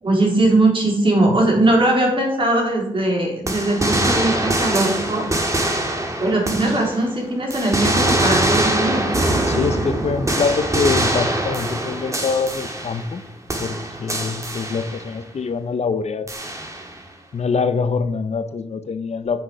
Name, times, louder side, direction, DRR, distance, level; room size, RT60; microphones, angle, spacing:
voice 1, 0.0-5.2 6.2-9.1, right 2 dB, 40° right, -2 dB, 3.5 m, -19 dB
sound 1, 3.5-7.2 7.5-13.2 13.5-15.2 16.3-17.0, right 1 dB, 25° right, 1.8 m, -23 dB
voice 2, 9.4-13.2 13.6-16.3 17.3-19.4, left 5 dB, 55° left, 11 dB, 0.7 m, -24 dB
7.3 x 6.0 x 5.6 m, 0.81 s
cardioid pair, 65°, 13 cm